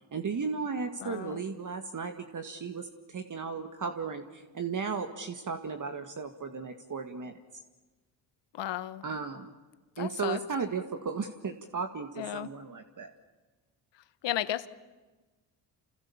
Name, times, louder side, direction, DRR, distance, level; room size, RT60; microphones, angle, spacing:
voice 1, 0.1-2.9 3.1-7.3 9.0-9.5 10.0-13.1, right 5 dB, 40° right, 6 dB, 2.0 m, -35 dB
voice 2, 1.0-1.4 8.5-9.0 10.0-10.4 12.2-12.5 14.2-14.7, left 12 dB, 65° left, 14 dB, 1.5 m, -34 dB
28.5 x 28.0 x 7.3 m, 1.3 s
supercardioid pair, 65°, 45 cm